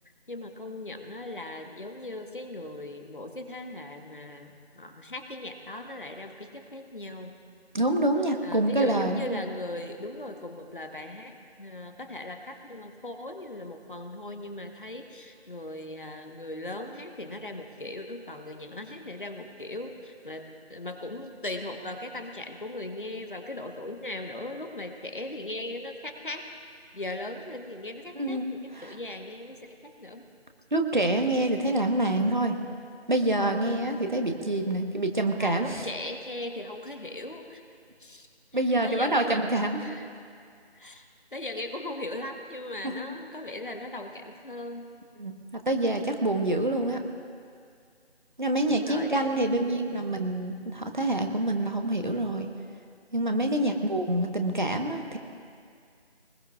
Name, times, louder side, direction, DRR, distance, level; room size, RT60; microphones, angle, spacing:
voice 1, 0.3-7.3 8.4-26.5 26.9-30.2 35.4-37.6 38.0-38.3 38.8-39.4 39.8-40.1 40.8-41.0 41.3-44.9 48.7-49.8, left 1 dB, 50° left, 5 dB, 1.3 m, -38 dB
voice 2, 7.7-9.4 28.1-28.4 28.7-29.0 30.7-32.5 33.1-35.9 38.5-40.0 42.8-43.0 45.2-45.3 45.7-47.0 48.4-52.5 53.1-55.2, right 1 dB, 45° right, 5 dB, 1.2 m, -26 dB
23.0 x 20.0 x 2.4 m, 2.2 s
figure-of-eight pair, 165°, 33 cm